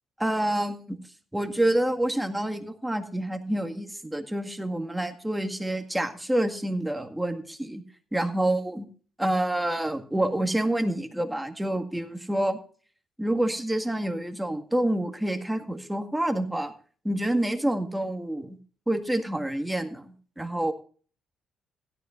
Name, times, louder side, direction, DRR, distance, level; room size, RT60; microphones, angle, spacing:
voice 1, 0.2-1.0 1.3-7.8 8.1-8.9 9.2-12.6 13.2-16.7 17.0-18.6 18.9-20.7, right 1 dB, 5° right, 6 dB, 1.9 m, -27 dB
16.5 x 13.0 x 2.5 m, 0.41 s
cardioid pair, 90°, 0 cm